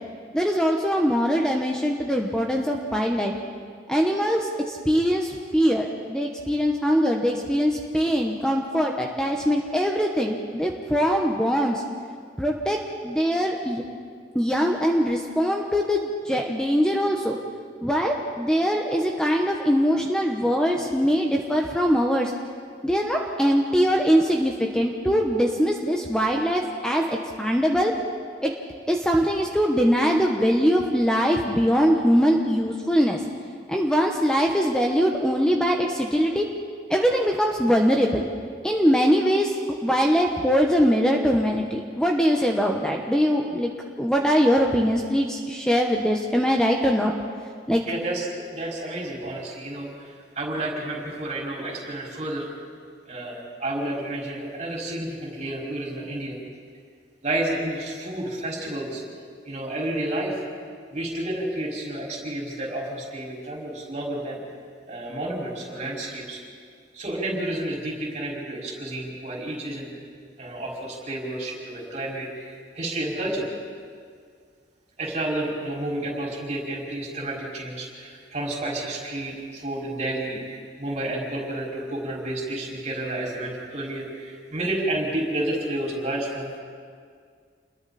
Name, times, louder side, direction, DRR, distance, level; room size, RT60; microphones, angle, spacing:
voice 1, 0.3-3.3 3.9-11.8 12.4-13.8 14.3-17.4 17.8-22.3 22.8-27.9 28.4-28.5 28.9-33.2 33.7-36.5 36.9-38.2 38.6-39.5 39.8-43.7 44.0-47.1 47.7-47.8, equal, 5° left, 1 dB, 1.1 m, -22 dB
voice 2, 47.8-52.5 53.1-56.4 57.2-59.0 59.4-60.4 60.9-64.4 64.9-66.4 66.9-69.9 70.4-73.5 75.0-86.6, right 1 dB, 40° right, -3 dB, 5.3 m, -30 dB
28.5 x 21.5 x 4.3 m, 2.1 s
head